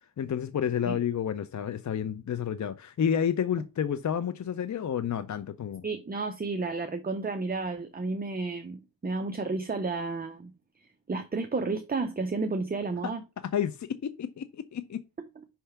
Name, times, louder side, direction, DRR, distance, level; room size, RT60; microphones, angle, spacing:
voice 1, 0.2-5.8 13.5-15.0, left 8 dB, 40° left, 0.5 m, -30 dB
voice 2, 5.8-10.5 11.1-13.2 15.2-15.3, right 3 dB, 20° right, 0.6 m, -32 dB
5.6 x 3.4 x 5.6 m
wide cardioid pair, 85°, 45 cm